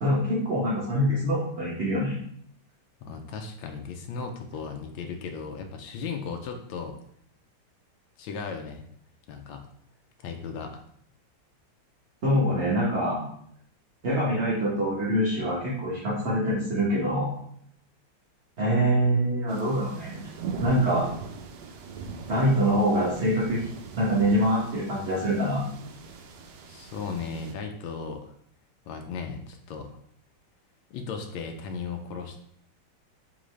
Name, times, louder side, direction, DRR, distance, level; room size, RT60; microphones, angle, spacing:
voice 1, 0.0-2.1 12.2-13.2 14.0-17.3 18.6-20.2 20.6-21.1 22.3-23.6 23.9-25.6, equal, 45° right, -7 dB, 1.1 m, -24 dB
voice 2, 3.0-7.0 8.2-8.8 9.3-9.6 10.2-10.8 26.6-28.3 28.9-29.9 30.9-32.4, left 5 dB, 85° left, 4 dB, 1.4 m, -36 dB
sound 1, 19.5-27.5, right 5 dB, 75° right, 1.0 m, -40 dB
3.8 x 3.7 x 3.1 m, 0.66 s
omnidirectional pair, 2.1 m